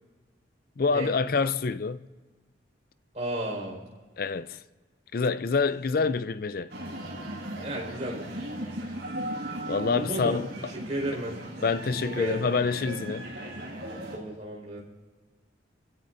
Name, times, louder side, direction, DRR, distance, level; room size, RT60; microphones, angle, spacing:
voice 1, 0.8-2.1 4.2-4.6 5.1-6.7 9.7-10.5 11.6-13.3, left 4 dB, 50° left, 0.4 m, -27 dB
voice 2, 3.1-3.8 7.5-8.3 9.9-11.3 12.2-12.5 14.1-14.8, right 1 dB, 35° right, 4.9 m, -33 dB
sound 1, 6.7-14.2, right 1 dB, 55° right, 6.2 m, -37 dB
27.0 x 16.0 x 2.7 m
head